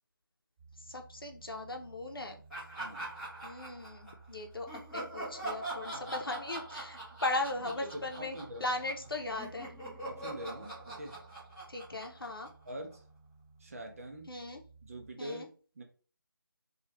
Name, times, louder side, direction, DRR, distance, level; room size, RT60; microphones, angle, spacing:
sound 1, 0.6-15.1, right 4 dB, 20° right, 1.1 m, -57 dB
voice 1, 0.9-2.4 3.4-9.7 11.7-12.5 14.3-14.6 15.2-15.5, left 2 dB, 80° left, 2 dB, 0.7 m, -38 dB
Laughter, 2.5-4.2 4.7-9.1 9.3-12.9, right 2 dB, ahead, 0.7 m, -43 dB
voice 2, 2.8-3.1 5.9-6.1 7.6-8.7 10.1-11.2 12.6-13.0 13.6-14.3 14.8-15.5 15.8-15.9, right 1 dB, 40° right, 2 dB, 0.6 m, -44 dB
2.6 x 2.3 x 3.0 m, 0.39 s
figure-of-eight pair, 155°, 12 cm